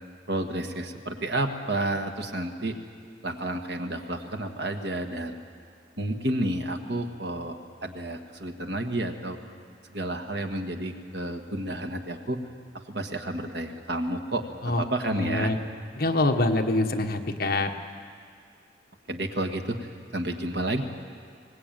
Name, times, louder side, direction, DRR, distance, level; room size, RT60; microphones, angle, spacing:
voice 1, 0.3-2.7 3.2-5.4 6.0-9.4 9.9-12.4 12.7-15.5 19.1-20.8, right 1 dB, 60° right, 5 dB, 1.7 m, -31 dB
voice 2, 15.1-15.6 16.0-17.7, left 2 dB, 50° left, 4 dB, 1.5 m, -25 dB
22.5 x 19.5 x 9.0 m, 2.2 s
head